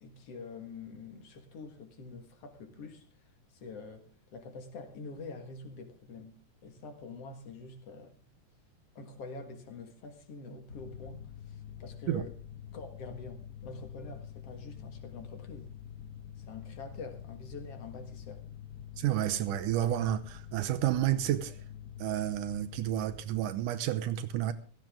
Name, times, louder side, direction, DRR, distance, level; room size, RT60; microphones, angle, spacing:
voice 1, 0.0-3.0 3.5-8.1 9.0-12.3 12.7-15.7 16.4-18.4, left 3 dB, 55° left, 2.5 m, -46 dB
Mechanical fan, 10.7-23.5, left 9 dB, 70° left, 0.9 m, -46 dB
voice 2, 19.0-21.6 22.0-24.5, right 12 dB, 80° right, 2.3 m, -30 dB
17.0 x 14.0 x 3.6 m
omnidirectional pair, 3.7 m